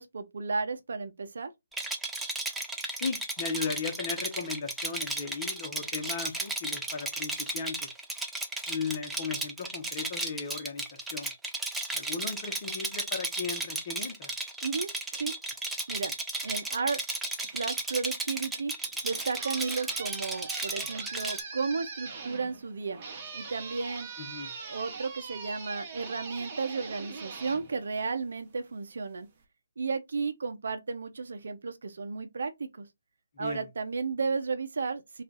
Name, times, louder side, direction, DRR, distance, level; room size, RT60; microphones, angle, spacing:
voice 1, 0.0-1.5 14.6-15.3 15.9-16.1 16.4-17.0 17.4-18.7 19.0-23.0 23.3-24.1 24.6-29.3 29.8-32.9 33.4-35.2, right 4 dB, 70° right, 0.6 m, -33 dB
Rattle, 1.7-21.4, right 2 dB, 5° right, 0.4 m, -34 dB
voice 2, 2.9-7.9 8.7-11.3 11.9-14.3 24.3-24.5 33.4-33.7, left 5 dB, 40° left, 0.9 m, -36 dB
sound 1, 18.8-28.5, right 5 dB, 35° right, 0.9 m, -42 dB
2.4 x 2.3 x 3.8 m
figure-of-eight pair, 145°, 0 cm